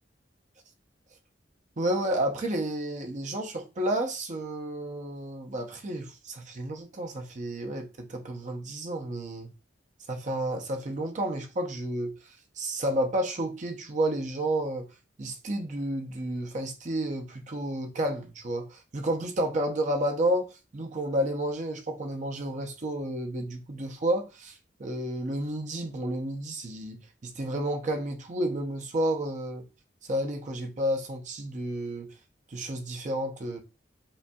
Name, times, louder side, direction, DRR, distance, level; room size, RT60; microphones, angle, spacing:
voice 1, 1.8-9.5 10.1-12.1 12.6-14.9 15.2-29.6 30.1-32.1 32.5-33.6, right 1 dB, 45° right, 0.6 m, -31 dB
5.3 x 2.5 x 2.3 m
head